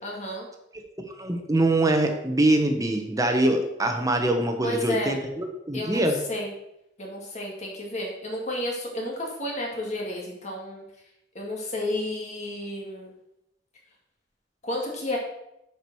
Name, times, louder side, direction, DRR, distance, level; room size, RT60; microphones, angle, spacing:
voice 1, 0.0-0.5 4.6-5.1 5.7-6.5 7.0-10.8 11.3-13.1 14.6-15.2, left 1 dB, 40° left, -2 dB, 2.1 m, -31 dB
voice 2, 1.2-6.1, right 1 dB, 20° right, 4 dB, 1.3 m, -23 dB
9.0 x 5.2 x 6.3 m, 0.83 s
head